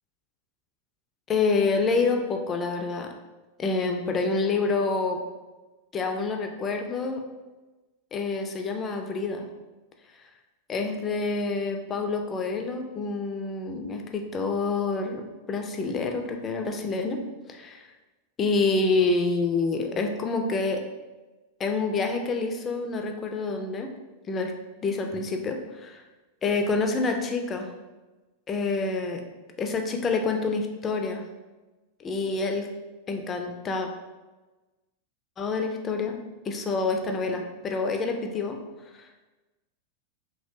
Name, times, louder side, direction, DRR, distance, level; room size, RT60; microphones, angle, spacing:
voice 1, 1.3-3.1 3.6-5.2 5.9-7.2 8.1-9.5 10.7-15.2 15.5-17.2 17.5-17.8 18.4-20.8 21.6-23.9 24.3-24.5 24.8-26.0 26.4-27.7 28.5-29.2 29.6-31.2 32.0-32.7 33.1-33.9 35.4-36.2 36.5-38.6, left 3 dB, 25° left, 4 dB, 0.4 m, -27 dB
3.0 x 2.6 x 2.6 m, 1.2 s
figure-of-eight pair, 90°, 0 cm